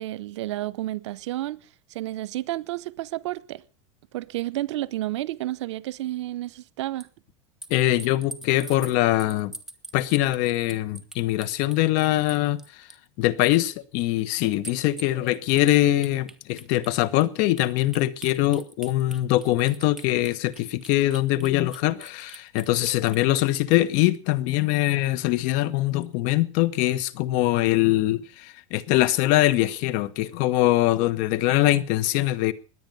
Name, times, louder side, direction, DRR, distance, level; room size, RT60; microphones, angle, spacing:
voice 1, 0.0-1.6 1.9-3.6 4.1-7.1, right 15 dB, 80° right, 0.8 m, -31 dB
kitchen utensils hitting measuring spoon ring, 7.0-7.1 7.6-13.1 13.4-13.7 14.0-14.1 14.4-23.2, right 2 dB, 5° right, 1.4 m, -43 dB
voice 2, 7.7-9.5 9.9-12.6 13.2-32.5, left 15 dB, 60° left, 1.3 m, -23 dB
20.5 x 9.1 x 5.4 m
supercardioid pair, 110°, 15 cm